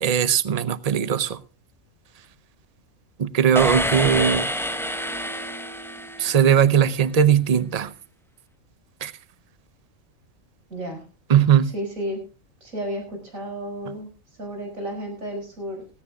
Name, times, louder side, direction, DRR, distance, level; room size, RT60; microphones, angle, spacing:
voice 1, 0.0-1.4 3.2-4.5 6.2-7.9 9.0-9.1 11.3-11.7, right 8 dB, 40° right, 0.6 m, -19 dB
sound 1, 3.5-6.7, equal, ahead, 0.9 m, -27 dB
voice 2, 10.7-11.0 11.6-12.2 12.6-14.1 14.4-15.8, equal, 70° right, 6.0 m, -32 dB
18.0 x 17.0 x 2.3 m
omnidirectional pair, 1.4 m